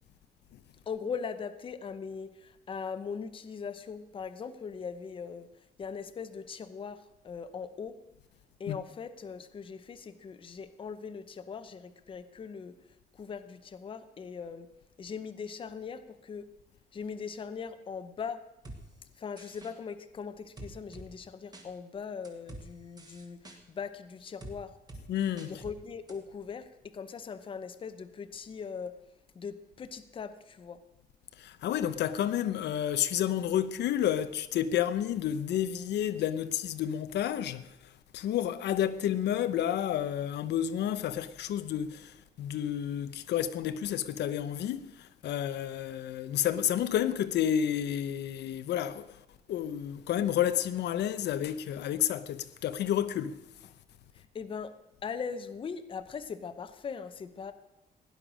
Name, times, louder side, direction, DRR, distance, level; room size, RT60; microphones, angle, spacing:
voice 1, 0.9-5.5 5.8-7.9 8.6-12.8 13.2-14.7 15.0-16.5 16.9-18.4 19.2-24.7 25.4-28.9 29.3-30.8 54.1-54.7 55.0-57.5, left 6 dB, 30° left, 0.8 m, -40 dB
sound 1, 18.6-18.8 19.4-19.7 20.6-21.1 21.5-21.7 22.2-22.6 23.0-23.6 24.4-24.5 24.9-25.0 25.4-25.7 26.1-26.2, right 2 dB, 25° right, 2.0 m, -46 dB
voice 2, 25.1-25.6 31.4-49.2 49.5-53.4, left 10 dB, 85° left, 0.8 m, -30 dB
16.5 x 10.5 x 6.2 m
cardioid pair, 180°, 17 cm